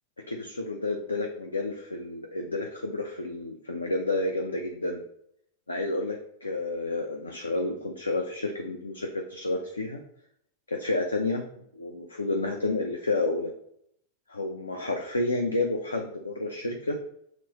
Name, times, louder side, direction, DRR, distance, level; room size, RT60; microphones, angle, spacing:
voice 1, 0.3-5.0 5.7-10.0 10.7-11.5 11.7-13.5 14.3-17.0, left 2 dB, 75° left, 3 dB, 0.3 m, -30 dB
5.8 x 2.0 x 2.7 m, 0.72 s
figure-of-eight pair, 90°, 0 cm